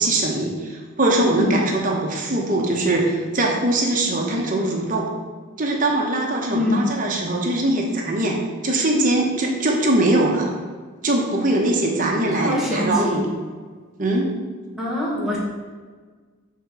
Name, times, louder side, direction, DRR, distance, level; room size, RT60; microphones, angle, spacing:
voice 1, 0.0-5.1 5.6-8.4 8.6-10.5 11.0-13.3 14.0-14.3, right 2 dB, 40° right, 0 dB, 1.0 m, -21 dB
voice 2, 6.5-6.9 12.3-13.2 14.8-15.4, left 1 dB, ahead, -6 dB, 1.4 m, -23 dB
7.4 x 3.7 x 4.8 m, 1.5 s
head